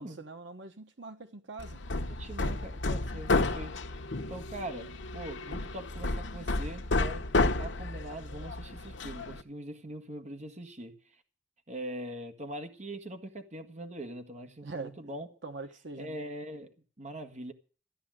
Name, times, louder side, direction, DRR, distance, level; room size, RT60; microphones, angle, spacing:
voice 1, 0.0-1.8 2.4-2.5 14.6-14.9 15.4-16.2, right 3 dB, 75° right, 1.1 m, -43 dB
Hammer, 1.6-9.4, left 2 dB, 75° left, 1.1 m, -32 dB
voice 2, 2.1-3.7 4.3-7.3 7.6-11.0 11.7-15.3 16.0-17.5, right 1 dB, 40° right, 1.7 m, -42 dB
14.0 x 9.9 x 7.6 m
head